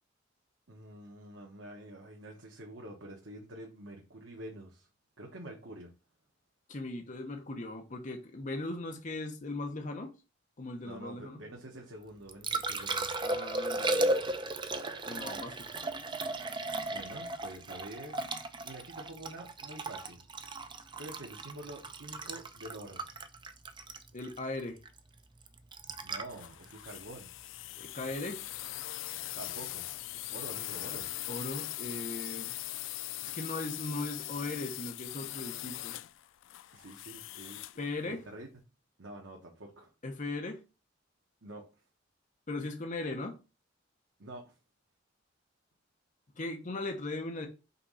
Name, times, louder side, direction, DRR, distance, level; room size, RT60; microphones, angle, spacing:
voice 1, 0.7-4.9 5.2-5.9 10.8-13.1 16.9-18.2 18.6-20.2 21.0-23.0 26.0-27.3 29.3-29.9 30.3-31.1 36.7-38.5 39.0-39.9 41.4-41.6 44.2-44.6, right 1 dB, 80° right, 1.3 m, -47 dB
voice 2, 6.7-10.1 10.6-11.4 13.2-14.2 15.1-15.7 24.1-24.8 27.8-28.4 31.3-32.5 33.2-35.9 37.8-38.2 40.0-40.6 42.5-43.4 46.4-47.5, left 2 dB, 40° left, 0.8 m, -38 dB
Liquid, 12.0-28.1 30.9-31.1, right 2 dB, 25° right, 0.6 m, -36 dB
sound 1, 26.3-37.9, left 16 dB, 80° left, 0.3 m, -41 dB
5.6 x 3.6 x 5.5 m
head